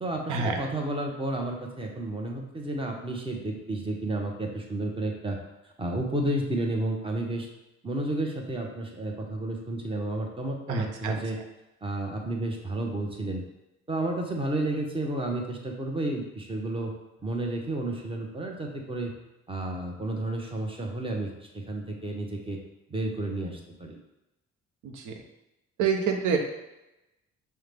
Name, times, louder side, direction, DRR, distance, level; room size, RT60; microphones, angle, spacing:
voice 1, 0.0-5.4 5.8-7.5 7.8-11.4 11.8-13.4 13.9-16.9 17.2-19.1 19.5-22.6 22.9-24.0, right 2 dB, 20° right, 1 dB, 0.8 m, -31 dB
voice 2, 10.7-11.2 24.8-25.1 25.8-26.4, right 5 dB, 85° right, 4 dB, 0.7 m, -27 dB
5.5 x 2.2 x 3.3 m, 0.95 s
cardioid pair, 90°, 30 cm